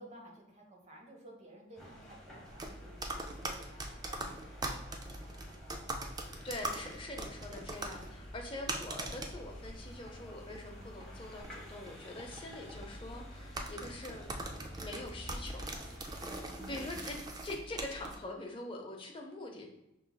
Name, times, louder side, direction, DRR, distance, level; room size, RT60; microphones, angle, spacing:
voice 1, 0.0-6.1 16.7-16.9, right 1 dB, 35° right, 0 dB, 0.9 m, -55 dB
sound 1, 1.7-17.0, equal, ahead, 0.9 m, -51 dB
sound 2, 2.5-18.2, right 2 dB, 20° right, 0.3 m, -43 dB
voice 2, 6.4-14.3 14.8-15.7 16.7-17.2 17.4-19.7, left 2 dB, 25° left, 1 dB, 0.6 m, -44 dB
5.4 x 3.0 x 2.3 m, 0.88 s
head